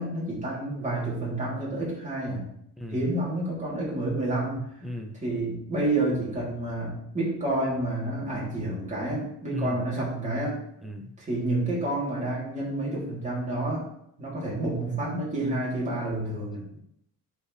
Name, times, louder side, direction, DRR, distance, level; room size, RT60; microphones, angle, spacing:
voice 1, 0.0-2.5 2.9-4.6 5.2-10.6 11.2-13.8 14.2-16.6, right 2 dB, 20° right, -6 dB, 3.1 m, -29 dB
voice 2, 4.8-5.2 9.5-9.9 10.8-11.1 16.7-16.8, left 1 dB, ahead, 4 dB, 0.8 m, -36 dB
11.0 x 4.8 x 3.3 m, 0.77 s
cardioid pair, 145°, 37 cm